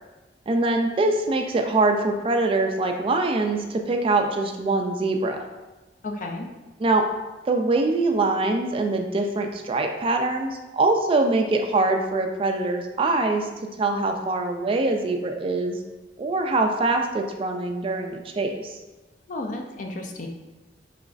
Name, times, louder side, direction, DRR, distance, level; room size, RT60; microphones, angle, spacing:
voice 1, 0.5-5.4 6.8-7.1 7.5-13.5 13.8-15.8 16.2-18.8, right 2 dB, 30° right, 4 dB, 0.3 m, -23 dB
voice 2, 6.0-6.5 19.3-20.3, left 2 dB, 45° left, 2 dB, 0.4 m, -32 dB
4.9 x 3.0 x 2.5 m, 1.1 s
head